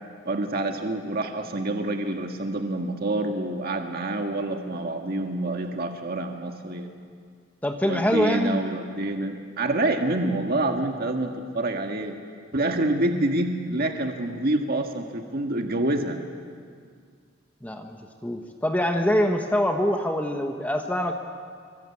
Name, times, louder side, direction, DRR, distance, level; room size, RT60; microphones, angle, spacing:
voice 1, 0.3-6.9 7.8-12.2 12.5-16.2, right 2 dB, 50° right, 3 dB, 1.8 m, -27 dB
voice 2, 7.6-8.6 17.6-21.1, equal, 10° left, 3 dB, 1.3 m, -24 dB
26.5 x 24.0 x 8.6 m, 2.1 s
head